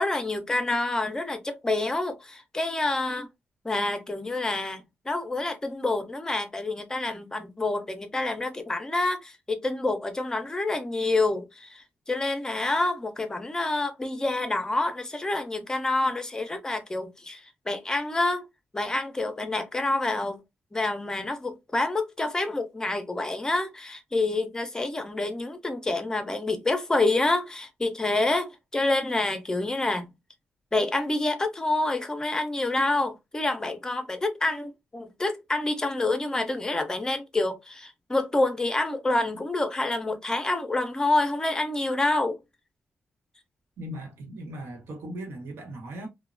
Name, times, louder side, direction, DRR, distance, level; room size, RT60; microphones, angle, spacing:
voice 1, 0.0-3.3 3.6-18.5 18.7-20.4 20.7-30.1 30.7-42.4, left 2 dB, 15° left, 0.5 m, -27 dB
voice 2, 43.8-46.1, right 1 dB, 85° right, 0.9 m, -38 dB
2.9 x 2.1 x 2.4 m
wide cardioid pair, 155°, 4 cm